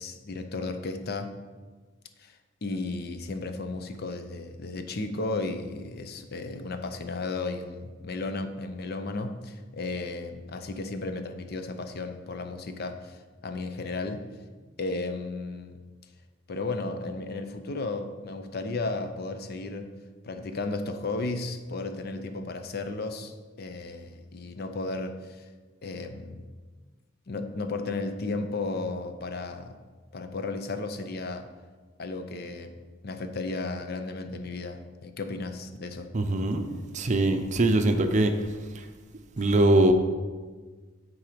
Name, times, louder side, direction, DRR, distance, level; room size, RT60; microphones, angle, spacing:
voice 1, 0.0-1.4 2.2-14.3 14.8-15.8 16.5-19.9 20.2-25.5 25.8-26.4 27.3-29.8 30.1-31.5 32.0-32.8 33.0-36.1 39.4-39.5, left 3 dB, 55° left, 8 dB, 0.6 m, -34 dB
voice 2, 36.1-36.7 36.9-38.5 38.7-38.9 39.4-39.9, right 1 dB, 40° right, 7 dB, 0.5 m, -22 dB
8.6 x 3.9 x 5.1 m, 1.4 s
head